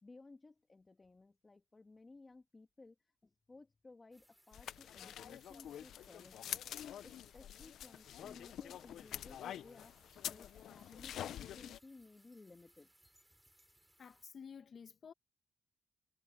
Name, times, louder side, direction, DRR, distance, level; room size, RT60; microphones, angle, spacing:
voice 1, 0.0-12.9, left 3 dB, 25° left, 1.9 m, -59 dB
sound 1, 4.1-14.2, right 1 dB, 5° right, 6.2 m, -69 dB
sound 2, 4.5-11.8, left 10 dB, 75° left, 0.8 m, -46 dB
voice 2, 14.0-15.1, left 6 dB, 50° left, 1.3 m, -52 dB
cardioid pair, 90°, 0 cm